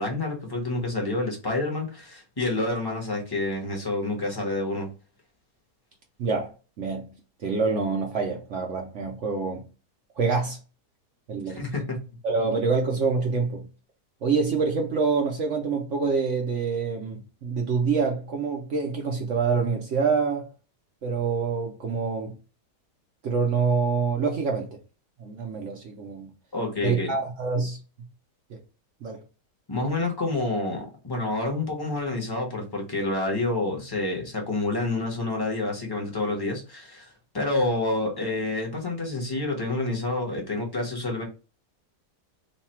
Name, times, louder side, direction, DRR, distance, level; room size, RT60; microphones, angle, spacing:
voice 1, 0.0-4.9 11.5-12.0 26.5-27.1 29.7-41.2, left 2 dB, 20° left, 0.8 m, -28 dB
voice 2, 6.2-7.1 7.4-9.7 10.2-10.6 11.3-11.6 12.2-13.7 14.2-20.5 21.0-22.4 23.2-24.8 25.2-26.3 26.8-27.8 28.5-28.6 29.0-29.2, right 5 dB, 60° right, 0.8 m, -26 dB
3.2 x 2.3 x 4.2 m
omnidirectional pair, 1.8 m